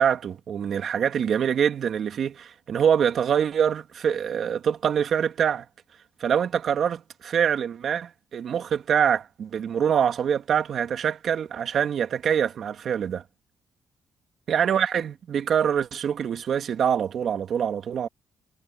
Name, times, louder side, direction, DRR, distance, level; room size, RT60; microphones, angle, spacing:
voice 1, 0.0-5.7 6.2-13.2 14.5-18.1, right 8 dB, 60° right, 2.4 m, -24 dB
cardioid pair, 90°, 0 cm